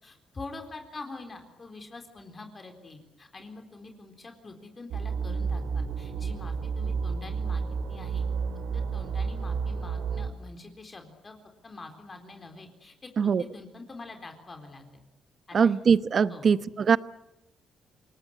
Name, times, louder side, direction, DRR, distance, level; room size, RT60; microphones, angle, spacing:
voice 1, 0.0-8.2 8.7-11.4 11.6-15.0 15.5-15.7 16.3-16.5, left 3 dB, 30° left, 5 dB, 4.0 m, -45 dB
sound 1, 4.9-10.3, right 5 dB, 80° right, 3.0 m, -31 dB
voice 2, 15.5-17.0, right 6 dB, 50° right, 15 dB, 0.9 m, -22 dB
28.0 x 18.5 x 10.0 m, 0.95 s
cardioid pair, 90°, 0 cm